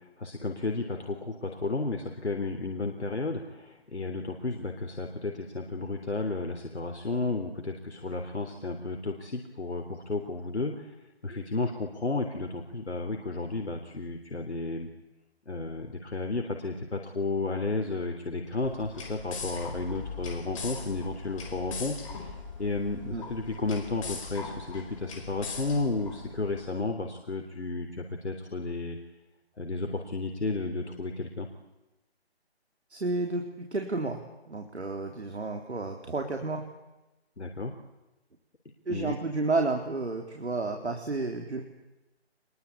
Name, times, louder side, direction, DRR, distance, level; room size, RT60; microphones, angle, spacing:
voice 1, 0.2-10.9 11.2-14.9 15.5-29.0 29.6-31.5 37.4-37.7 38.9-39.1, left 3 dB, 80° left, 4 dB, 3.5 m, -33 dB
sound 1, 18.5-26.7, left 5 dB, 30° left, 4.9 m, -41 dB
voice 2, 32.9-34.2 34.5-36.6 38.9-41.6, right 3 dB, 80° right, 3 dB, 3.9 m, -31 dB
26.5 x 22.0 x 8.6 m, 1.0 s
figure-of-eight pair, 155°, 33 cm